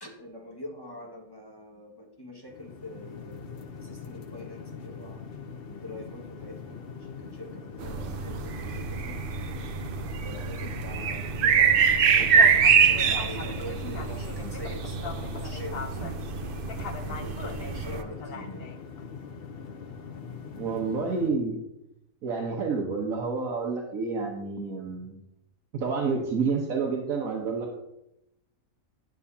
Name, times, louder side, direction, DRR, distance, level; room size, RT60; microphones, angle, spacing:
voice 1, 0.0-5.2 5.7-9.2 10.2-16.3 17.1-18.7, equal, 15° left, -2 dB, 1.7 m, -43 dB
sound 1, 2.5-21.3, left 5 dB, 50° left, 0.8 m, -41 dB
sound 2, 7.8-18.0, right 6 dB, 55° right, 0.6 m, -25 dB
voice 2, 20.6-21.6 22.2-25.2 25.7-27.8, right 4 dB, 75° right, -1 dB, 1.6 m, -29 dB
11.0 x 9.1 x 2.8 m, 0.86 s
omnidirectional pair, 1.4 m